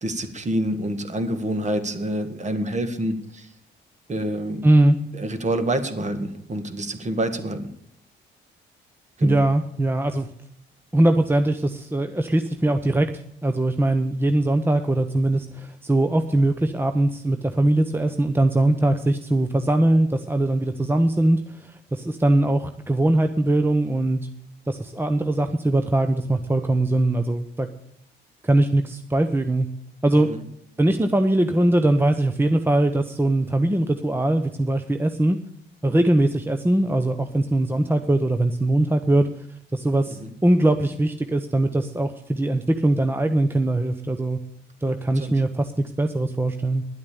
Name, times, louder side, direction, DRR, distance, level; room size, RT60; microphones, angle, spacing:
voice 1, 0.0-3.5 4.1-4.6 5.1-7.7 9.2-9.4 30.1-30.4 40.2-40.3 45.1-45.3, right 1 dB, 35° right, 9 dB, 1.8 m, -27 dB
voice 2, 4.6-5.0 9.2-10.3 10.9-13.1 13.4-24.2 24.7-27.7 28.4-29.7 30.0-30.3 30.8-35.4 35.8-39.3 39.7-44.4 44.8-46.8, right 1 dB, 10° right, 8 dB, 0.8 m, -21 dB
11.0 x 8.6 x 8.4 m, 0.71 s
cardioid pair, 90°, 20 cm